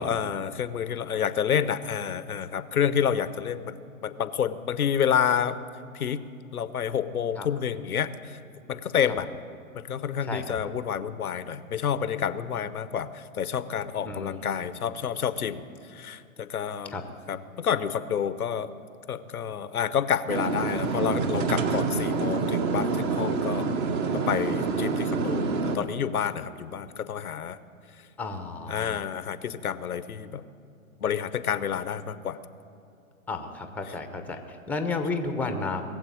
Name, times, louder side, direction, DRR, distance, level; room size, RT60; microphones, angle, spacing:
voice 1, 0.0-3.8 4.0-5.6 5.9-6.2 6.5-8.4 8.7-9.3 9.7-15.6 15.9-16.9 17.3-18.7 19.1-23.7 24.1-25.5 25.7-27.6 28.7-30.4 31.0-32.4, left 8 dB, 80° left, 14 dB, 0.9 m, -29 dB
voice 2, 14.0-14.5 16.9-17.0 28.2-29.0 33.3-35.8, left 3 dB, 5° left, 7 dB, 0.8 m, -32 dB
sound 1, 20.3-25.8, right 4 dB, 25° right, 1.0 m, -27 dB
20.0 x 7.9 x 9.2 m, 2.7 s
hypercardioid pair, 125°, 43 cm